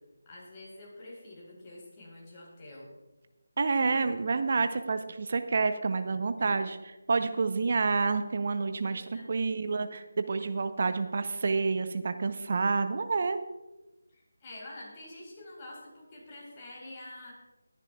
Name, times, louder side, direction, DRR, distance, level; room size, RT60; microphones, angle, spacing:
voice 1, 0.2-2.9 3.8-4.1 6.4-6.7 8.9-9.6 14.1-17.3, left 1 dB, 25° left, -3 dB, 4.5 m, -47 dB
voice 2, 3.6-6.8 7.1-9.0 9.3-13.4, right 4 dB, 45° right, 10 dB, 0.8 m, -28 dB
20.0 x 10.5 x 2.4 m, 1.1 s
figure-of-eight pair, 160°, 0 cm